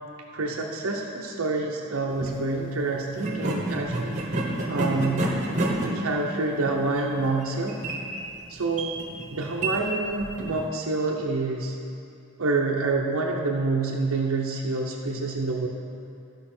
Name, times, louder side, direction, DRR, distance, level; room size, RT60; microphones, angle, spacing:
voice 1, 0.3-4.4 4.7-5.2 5.8-7.8 8.5-8.9 9.3-11.8 12.4-15.7, right 3 dB, 70° right, -1 dB, 0.7 m, -27 dB
sound 1, 2.1-2.4 3.1-10.7, right 1 dB, 35° right, 1.1 m, -30 dB
13.5 x 5.6 x 4.3 m, 2.7 s
head